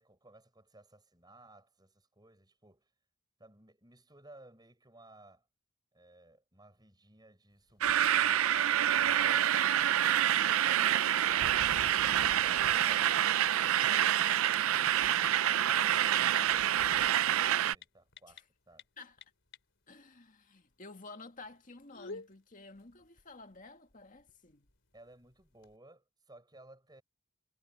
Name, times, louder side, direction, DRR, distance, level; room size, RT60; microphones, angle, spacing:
voice 1, 0.0-2.9 3.4-5.5 5.9-8.5 15.7-18.9 24.9-27.0, right 2 dB, 20° right, 6.8 m, -58 dB
sound 1, 7.5-25.8, left 4 dB, 55° left, 4.1 m, -57 dB
sound 2, 7.8-17.7, right 11 dB, 70° right, 0.5 m, -27 dB
voice 2, 19.9-24.7, left 3 dB, 35° left, 2.0 m, -52 dB
head